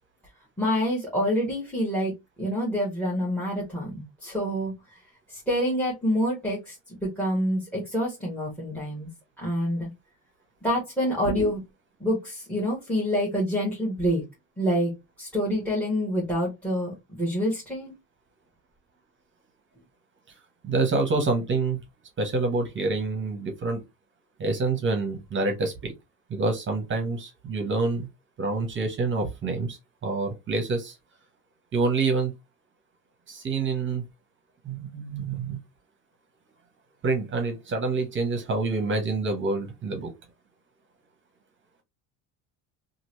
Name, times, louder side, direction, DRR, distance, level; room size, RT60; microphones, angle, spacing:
voice 1, 0.6-2.1 2.4-4.7 5.3-9.1 9.4-9.9 10.6-11.6 12.0-14.2 14.6-14.9 15.2-17.9, equal, 5° left, -2 dB, 1.1 m, -27 dB
voice 2, 20.6-21.8 22.2-23.8 24.4-25.9 26.3-28.1 28.4-31.0 31.7-32.3 33.3-34.0 34.6-35.6 37.0-40.1, right 3 dB, 30° right, 4 dB, 0.9 m, -27 dB
2.9 x 2.5 x 3.0 m, 0.21 s
cardioid pair, 135°, 39 cm